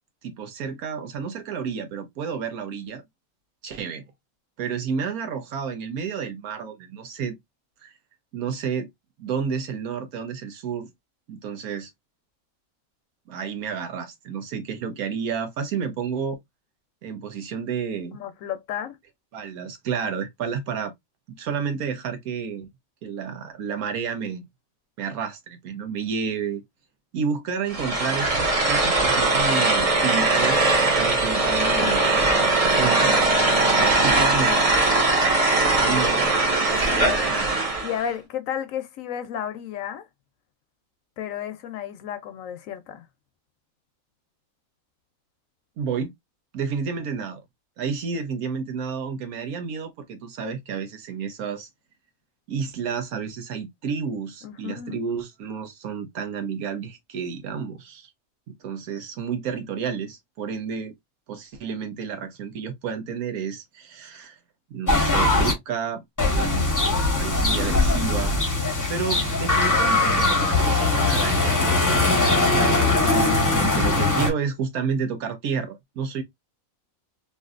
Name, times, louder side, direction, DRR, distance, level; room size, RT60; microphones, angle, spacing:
voice 1, 0.2-3.0 3.6-4.0 4.6-7.4 7.8-7.9 8.3-8.9 9.2-10.9 11.3-11.9 13.3-16.4 17.0-18.2 19.3-20.9 21.3-22.7 23.0-24.4 25.0-26.6 27.1-33.1 33.5-34.6 35.8-36.3 37.0-37.5 45.8-46.1 46.5-47.4 47.8-51.7 52.5-58.1 58.5-60.9 61.3-64.4 64.7-66.7 67.1-73.3 73.6-76.2, right 6 dB, 80° right, 1.2 m, -31 dB
voice 2, 18.1-19.0 31.8-32.0 32.3-32.6 35.9-36.3 36.7-37.2 37.8-40.1 41.2-43.0 54.4-55.0, left 9 dB, 70° left, 0.9 m, -33 dB
sound 1, 27.7-38.0, right 2 dB, 35° right, 0.6 m, -20 dB
sound 2, 64.9-65.5 66.2-74.3, left 2 dB, 15° left, 0.7 m, -21 dB
3.1 x 2.6 x 2.3 m
omnidirectional pair, 1.5 m